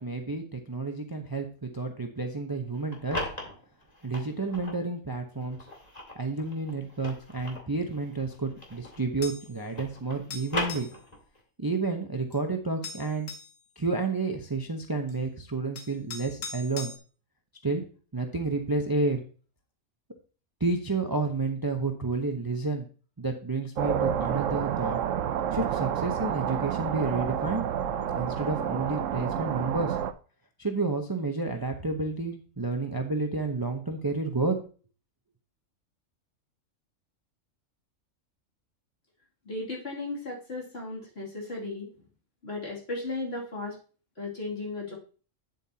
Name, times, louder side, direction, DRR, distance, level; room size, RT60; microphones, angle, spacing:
voice 1, 0.0-3.2 4.0-5.6 6.2-10.9 11.6-13.3 13.8-16.9 17.6-17.8 18.1-19.2 20.6-22.9 23.2-25.0 25.5-27.7 28.1-30.0 30.6-34.6, right 3 dB, 20° right, 4 dB, 0.7 m, -30 dB
sound 1, 2.7-4.8 5.4-9.1 9.4-11.4, left 1 dB, 30° left, 2.1 m, -38 dB
sound 2, 9.2-9.5 10.3-11.0 12.3-12.4 12.8-13.5 15.1-15.2 15.8-17.0, left 4 dB, 70° left, 1.4 m, -40 dB
sound 3, 23.8-30.1, right 9 dB, 75° right, 1.0 m, -29 dB
voice 2, 39.4-41.9 42.4-43.8 44.2-44.9, left 2 dB, 50° left, -3 dB, 2.9 m, -35 dB
9.0 x 7.7 x 2.8 m, 0.38 s
omnidirectional pair, 1.4 m